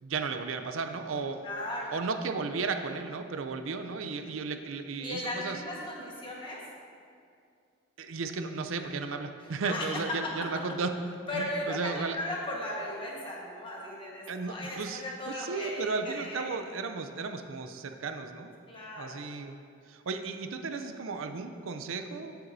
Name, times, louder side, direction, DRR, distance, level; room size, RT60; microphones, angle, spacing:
voice 1, 0.0-1.4 1.9-5.6 8.0-11.0 11.3-12.2 14.3-18.5 19.0-19.6 19.9-22.3, right 4 dB, 80° right, 7 dB, 0.5 m, -34 dB
voice 2, 1.4-2.1 5.0-6.6 9.4-10.2 11.3-16.5 18.7-19.3, left 1 dB, 25° left, -3 dB, 1.4 m, -37 dB
14.5 x 6.9 x 2.7 m, 2.4 s
head